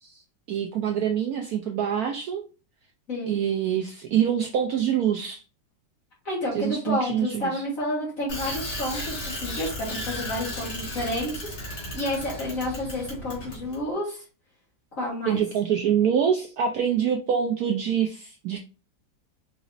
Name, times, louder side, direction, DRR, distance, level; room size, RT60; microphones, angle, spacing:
voice 1, 0.5-2.4 3.3-5.4 6.5-7.6 15.3-18.6, right 8 dB, 70° right, 3 dB, 0.9 m, -25 dB
voice 2, 6.3-11.5 11.9-14.2 15.0-15.4, left 1 dB, 45° left, -6 dB, 1.9 m, -30 dB
Bicycle, 8.3-13.8, left 1 dB, 75° left, 2.5 m, -35 dB
4.9 x 3.0 x 2.6 m, 0.34 s
omnidirectional pair, 2.0 m